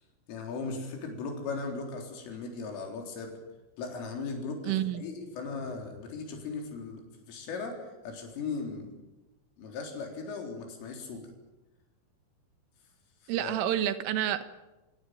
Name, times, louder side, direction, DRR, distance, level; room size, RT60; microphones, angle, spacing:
voice 1, 0.3-3.3 3.8-7.7 8.0-8.9 9.6-11.3 13.2-13.6, left 4 dB, 85° left, 2 dB, 6.5 m, -38 dB
voice 2, 4.6-5.0 13.3-14.5, right 11 dB, 85° right, 10 dB, 4.0 m, -29 dB
28.0 x 17.0 x 9.3 m, 1.1 s
omnidirectional pair, 5.6 m